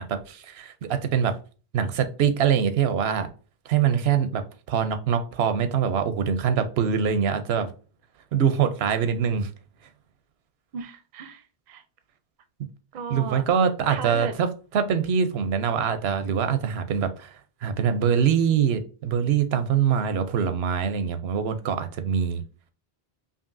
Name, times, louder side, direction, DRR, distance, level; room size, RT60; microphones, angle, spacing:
voice 1, 0.0-1.4 1.7-3.3 3.7-7.7 8.3-9.5 13.1-22.4, right 7 dB, 85° right, 0.8 m, -24 dB
voice 2, 10.7-11.8 12.9-13.4 13.9-14.4, right 6 dB, 55° right, 0.6 m, -36 dB
5.2 x 2.6 x 2.6 m
omnidirectional pair, 1.0 m